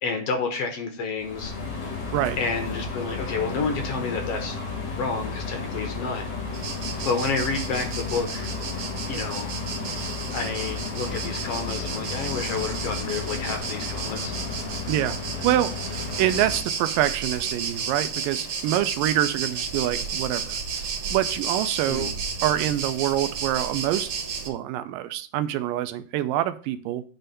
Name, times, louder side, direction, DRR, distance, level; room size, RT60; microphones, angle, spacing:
voice 1, 0.0-1.5 2.4-4.6 5.0-6.3 7.0-8.5 9.1-9.5 10.3-14.3 21.9-22.1, left 4 dB, 65° left, 5 dB, 1.5 m, -29 dB
sound 1, 1.2-16.6, left 4 dB, 90° left, 4.8 m, -33 dB
sound 2, 6.5-24.5, right 6 dB, 55° right, 1.6 m, -33 dB
voice 2, 14.9-15.2 15.4-22.1 22.4-24.1 24.5-27.0, right 13 dB, 80° right, 11 dB, 2.2 m, -26 dB
9.0 x 3.3 x 6.8 m, 0.42 s
omnidirectional pair, 4.1 m